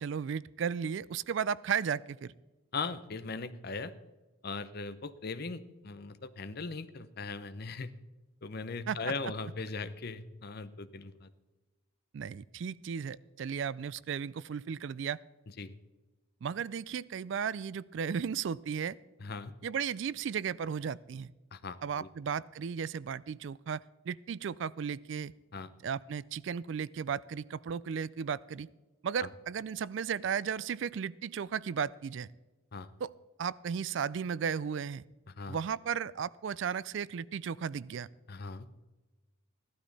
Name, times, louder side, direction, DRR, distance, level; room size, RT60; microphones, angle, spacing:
voice 1, 0.0-2.3 8.9-9.1 12.1-15.2 16.4-19.0 19.6-21.3 21.8-25.3 25.8-28.7 29.0-32.3 33.0-33.1 33.4-35.0 35.5-38.1, right 7 dB, 60° right, 21 dB, 0.3 m, -35 dB
voice 2, 2.7-3.9 4.4-7.9 8.4-11.3 15.6-15.7 19.2-19.5 21.5-22.1 25.5-25.7 29.2-29.3 32.7-32.9 35.4-35.6 38.3-38.7, left 4 dB, 50° left, 13 dB, 0.7 m, -39 dB
15.5 x 12.0 x 4.1 m, 1.1 s
head